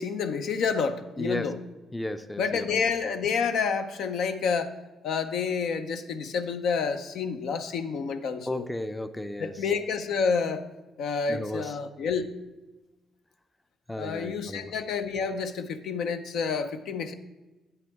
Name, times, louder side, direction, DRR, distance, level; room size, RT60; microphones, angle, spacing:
voice 1, 0.0-1.6 2.4-4.7 5.0-8.7 9.4-10.6 11.0-12.3 14.0-17.1, left 5 dB, 75° left, 8 dB, 0.6 m, -29 dB
voice 2, 1.2-1.5 1.9-2.8 8.5-9.5 11.3-11.7 13.9-14.7, left 1 dB, 10° left, 10 dB, 0.5 m, -34 dB
9.3 x 8.1 x 3.5 m, 1.1 s
cardioid pair, 90°, 0 cm